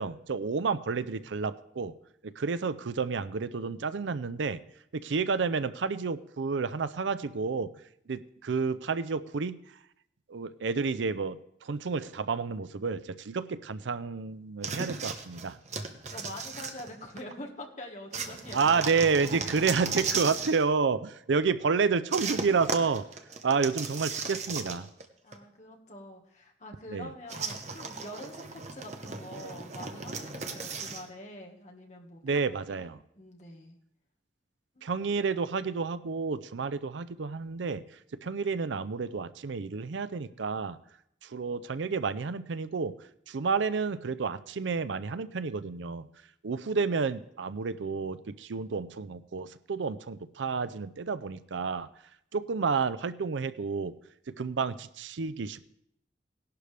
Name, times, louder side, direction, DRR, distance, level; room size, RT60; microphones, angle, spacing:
voice 1, 0.0-1.9 2.2-4.6 4.9-7.7 8.1-9.5 10.3-15.6 18.5-23.0 23.4-24.9 26.9-27.1 32.2-33.0 34.8-37.8 38.2-40.8 41.2-43.0 43.3-46.1 46.4-51.9 52.3-53.9 54.3-55.7, right 5 dB, 80° right, 15 dB, 0.5 m, -30 dB
sound 1, 14.6-17.3 18.1-20.6 22.1-25.0 25.3-25.4 27.3-31.1, right 4 dB, 40° right, 1.0 m, -36 dB
voice 2, 16.0-18.9 25.2-32.9 33.1-33.8 34.7-35.1, left 1 dB, 40° left, 1 dB, 1.6 m, -45 dB
17.5 x 11.5 x 3.4 m, 0.73 s
head